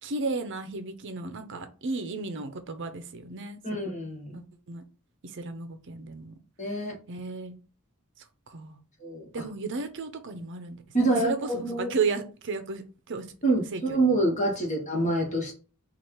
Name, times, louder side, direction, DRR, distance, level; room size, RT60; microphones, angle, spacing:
voice 1, 0.0-3.6 4.3-4.8 5.3-6.3 7.1-7.6 8.5-8.8 9.3-13.3 13.7-14.0 14.6-14.7, right 4 dB, 55° right, 0.6 m, -34 dB
voice 2, 3.6-4.4 6.6-6.9 9.0-9.4 10.9-11.9 13.4-15.5, right 2 dB, 35° left, 1.4 m, -26 dB
4.4 x 2.4 x 4.7 m
head